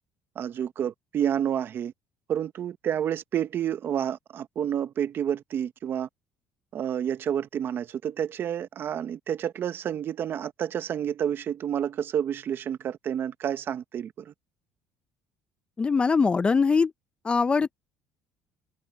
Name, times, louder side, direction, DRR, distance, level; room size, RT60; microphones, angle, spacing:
voice 1, 0.4-1.9 2.3-6.1 6.7-14.3, right 9 dB, 40° right, 0.8 m, -29 dB
voice 2, 15.8-16.9 17.2-17.7, left 5 dB, 20° left, 0.4 m, -22 dB
cardioid pair, 135°, 5 cm